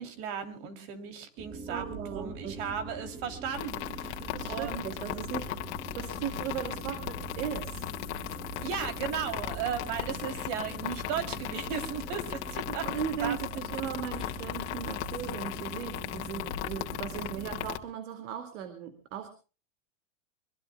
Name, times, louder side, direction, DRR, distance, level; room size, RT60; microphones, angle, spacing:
voice 1, 0.0-4.8 8.6-12.9 13.2-13.4, right 7 dB, 50° right, 7 dB, 3.2 m, -36 dB
sound 1, 1.4-17.7, right 3 dB, 20° right, 3.0 m, -43 dB
voice 2, 1.7-2.6 4.2-5.6 5.9-7.9 12.7-19.3, right 9 dB, 65° right, 8 dB, 2.4 m, -37 dB
sound 2, 3.5-17.8, left 15 dB, 60° left, 2.0 m, -37 dB
24.0 x 22.0 x 2.3 m, 0.35 s
supercardioid pair, 150°, 39 cm